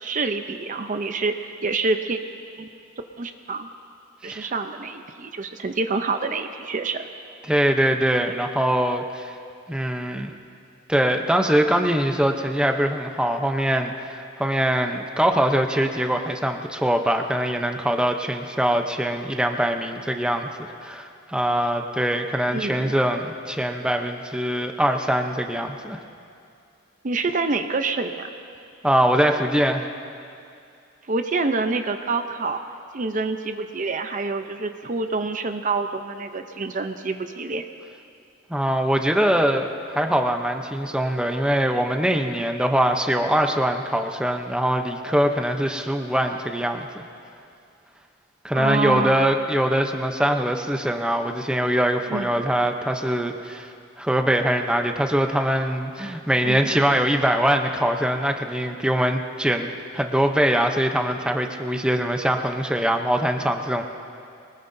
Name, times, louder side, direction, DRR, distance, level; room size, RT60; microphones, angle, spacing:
voice 1, 0.0-2.2 2.6-2.7 3.2-3.7 4.2-7.1 22.5-22.9 27.0-28.3 31.1-32.6 32.9-37.6 48.5-49.2 52.1-52.4 56.4-56.7, right 3 dB, 40° right, 7 dB, 0.6 m, -27 dB
voice 2, 7.5-9.3 9.7-10.3 10.9-20.5 20.8-26.0 28.8-29.8 38.5-47.0 48.4-53.7 54.0-63.8, right 1 dB, 5° right, 4 dB, 0.7 m, -23 dB
23.5 x 20.0 x 2.7 m, 2.5 s
head